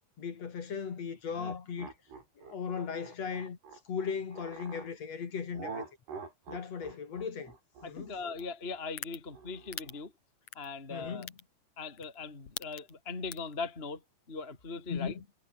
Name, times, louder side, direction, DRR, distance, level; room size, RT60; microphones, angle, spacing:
voice 1, 0.2-1.9 2.4-3.6 3.8-5.8 6.5-7.5 7.8-8.2 10.9-11.4 14.9-15.2, left 6 dB, 45° left, 3.2 m, -37 dB
sound 1, 1.3-4.9 5.5-10.0, right 5 dB, 75° right, 8.6 m, -46 dB
voice 2, 7.8-10.1 10.5-11.3 11.8-14.0 14.3-15.1, left 4 dB, 15° left, 2.4 m, -40 dB
sound 2, 8.4-8.5 9.0-9.2 9.7-9.9 10.5-10.7 11.2-11.4 12.0-12.1 12.4-12.9 13.3-13.5, left 11 dB, 60° left, 1.8 m, -39 dB
omnidirectional pair, 4.8 m